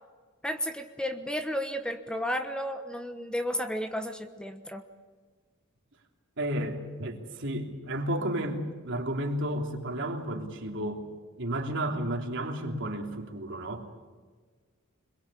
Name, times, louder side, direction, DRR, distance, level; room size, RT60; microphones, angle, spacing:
voice 1, 0.4-4.8, equal, 5° left, 7 dB, 1.2 m, -33 dB
voice 2, 6.4-11.1 11.4-13.9, right 1 dB, 65° right, 2 dB, 3.3 m, -32 dB
26.5 x 22.0 x 8.6 m, 1.5 s
head